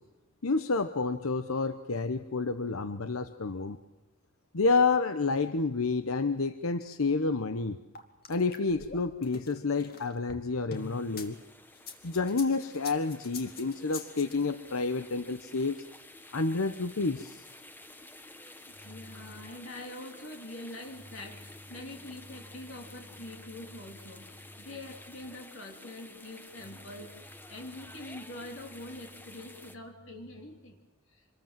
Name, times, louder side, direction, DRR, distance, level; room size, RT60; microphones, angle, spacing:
voice 1, 0.4-3.8 4.5-7.8 8.3-11.4 12.0-15.8 16.3-17.4, left 3 dB, 90° left, 10 dB, 1.0 m, -29 dB
sound 1, 7.9-11.3 11.7-14.3, left 4 dB, 50° left, 2.6 m, -44 dB
sound 2, 10.7-29.8, left 1 dB, 10° left, 1.2 m, -51 dB
voice 2, 13.4-13.7 18.6-30.8, left 1 dB, 65° left, 2 dB, 3.0 m, -44 dB
26.5 x 21.5 x 7.5 m, 1.0 s
head